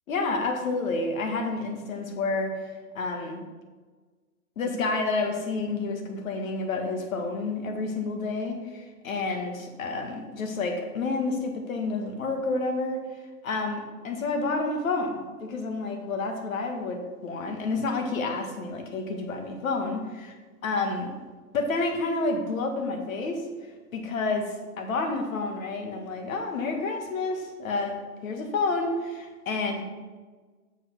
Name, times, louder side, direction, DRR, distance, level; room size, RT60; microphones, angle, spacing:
voice 1, 0.1-2.5 2.9-3.4 4.6-13.0 13.4-20.3 20.6-21.1 21.5-23.4 23.9-29.8, left 3 dB, 55° left, 4 dB, 1.7 m, -29 dB
7.0 x 5.1 x 6.0 m, 1.4 s
hypercardioid pair, 150°, 47 cm